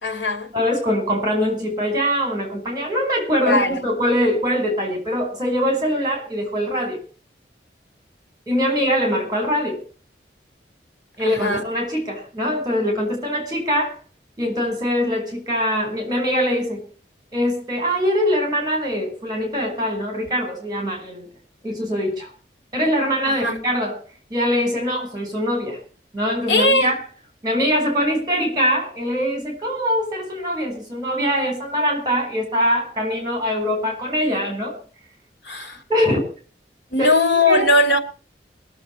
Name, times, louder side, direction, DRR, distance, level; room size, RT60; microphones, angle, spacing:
voice 1, 0.0-0.5 3.4-3.8 11.2-11.6 23.3-23.6 26.5-26.9 35.4-35.8 36.9-38.0, left 2 dB, 80° left, 3.0 m, -19 dB
voice 2, 0.5-7.0 8.5-9.8 11.2-14.0 14.4-16.8 17.3-21.3 21.6-22.3 22.7-24.0 24.3-25.8 26.1-26.9 27.4-34.8 35.9-36.2 37.0-37.1 37.5-37.7, equal, 20° right, 5.3 m, -22 dB
21.5 x 7.5 x 7.2 m
head